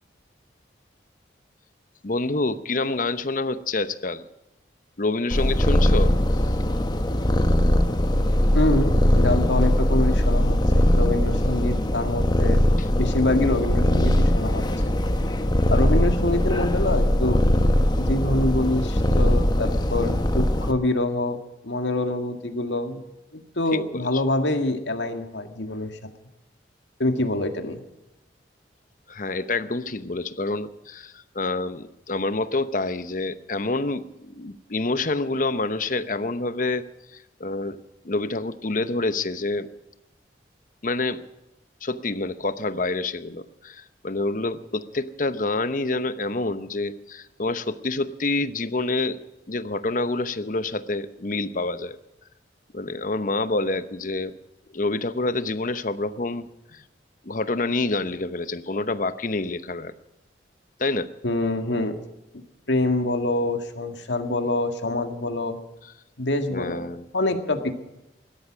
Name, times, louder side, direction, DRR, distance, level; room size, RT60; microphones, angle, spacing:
voice 1, 2.0-4.2 5.0-6.2 24.1-24.2 29.1-36.8 37.1-37.8 38.0-39.7 40.8-41.2 41.8-49.2 49.5-52.0 52.7-54.3 54.7-56.8 57.2-59.9 60.8-61.1 66.5-67.0 67.6-67.7, left 2 dB, 45° left, 12 dB, 0.9 m, -27 dB
Purr, 5.3-20.7, left 1 dB, 25° left, 1.1 m, -21 dB
voice 2, 8.5-12.6 13.0-14.6 15.7-17.4 18.0-23.0 23.3-26.0 27.0-27.8 61.2-62.0 62.7-65.6 66.2-67.7, left 2 dB, 80° left, 6 dB, 1.9 m, -25 dB
17.0 x 13.0 x 6.2 m, 0.94 s
head